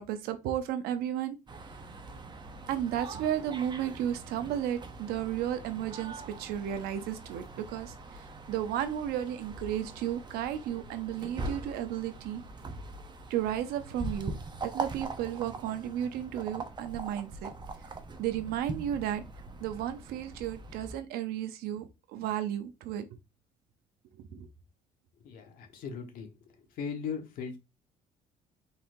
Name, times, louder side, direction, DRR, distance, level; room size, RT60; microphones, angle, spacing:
voice 1, 0.0-1.4 2.7-12.4 13.3-14.3 14.6-17.5 18.2-19.2 19.6-23.1 24.2-24.5, right 10 dB, 85° right, 0.7 m, -33 dB
sound 1, 1.5-21.0, right 3 dB, 30° right, 0.8 m, -42 dB
voice 2, 25.2-27.6, left 6 dB, 65° left, 1.3 m, -39 dB
4.2 x 4.1 x 2.6 m
cardioid pair, 90°, 16 cm